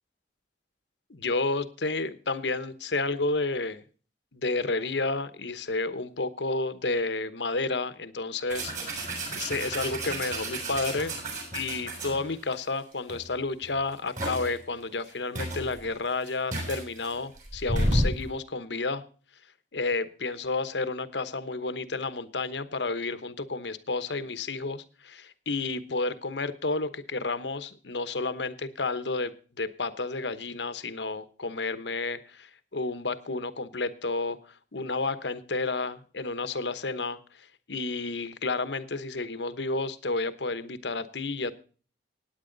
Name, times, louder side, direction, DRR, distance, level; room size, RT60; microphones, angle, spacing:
voice 1, 1.1-3.8 4.3-11.1 11.5-19.0 19.7-34.4 34.7-37.2 37.7-41.5, left 3 dB, 85° left, 13 dB, 1.1 m, -31 dB
sound 1, 8.5-12.5 13.1-13.3 13.6-14.6 15.1-15.2 15.3-18.2, right 1 dB, 45° right, 7.0 m, -31 dB
16.5 x 9.7 x 4.0 m, 0.40 s
head